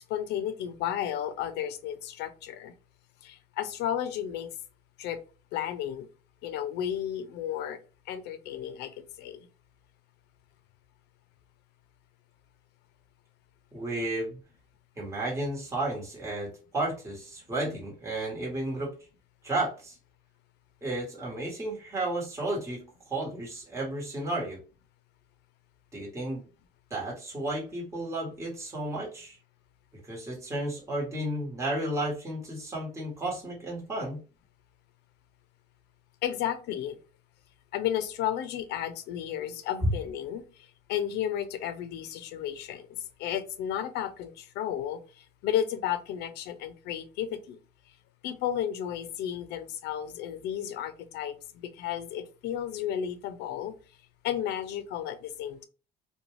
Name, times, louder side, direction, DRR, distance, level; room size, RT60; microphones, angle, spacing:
voice 1, 0.1-2.7 3.2-4.5 5.0-5.2 5.5-6.1 6.4-7.8 8.1-9.5 36.2-37.0 37.7-42.9 43.2-47.6 48.2-53.7 54.2-55.7, left 10 dB, 80° left, 10 dB, 0.5 m, -33 dB
voice 2, 13.7-14.4 15.0-18.9 19.4-19.9 20.8-22.8 23.1-24.6 25.9-26.4 26.9-29.4 30.0-34.2, right 1 dB, 15° right, -4 dB, 1.2 m, -33 dB
2.4 x 2.2 x 3.1 m, 0.35 s
cardioid pair, 110°, 17 cm